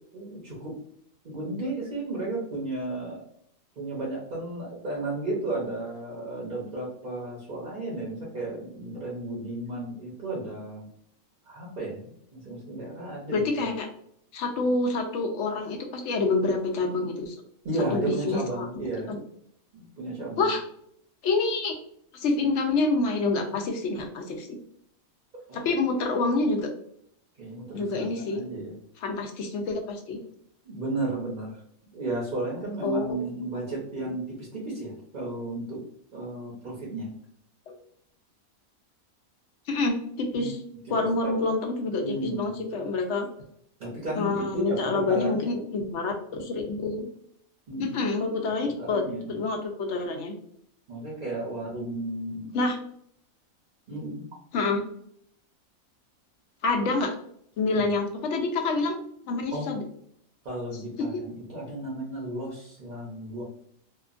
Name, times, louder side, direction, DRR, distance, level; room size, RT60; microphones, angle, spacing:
voice 1, 0.1-0.7 1.2-3.2 3.8-10.9 11.5-13.8 17.6-19.2 19.7-20.5 25.5-25.7 27.4-28.7 30.6-31.6 31.9-35.8 36.1-37.1 40.3-40.5 41.0-41.3 42.0-42.7 43.8-45.5 47.7-48.0 48.6-49.5 50.9-52.6 53.9-54.3 57.7-57.8 59.5-59.7 60.4-63.4, right 2 dB, 45° right, -4 dB, 0.8 m, -34 dB
voice 2, 13.3-13.9 14.3-17.3 17.9-18.7 19.1-19.2 20.4-20.6 21.2-21.8 22.1-24.6 25.5-26.7 27.7-28.4 29.0-30.2 32.8-33.0 33.7-34.1 37.7-37.8 39.7-40.6 40.9-43.3 44.2-47.0 47.8-50.3 52.5-52.8 54.5-54.8 56.6-57.1 57.6-59.0 59.3-59.8 61.1-61.2, left 3 dB, 65° left, 4 dB, 0.8 m, -27 dB
2.8 x 2.3 x 2.4 m, 0.68 s
omnidirectional pair, 1.5 m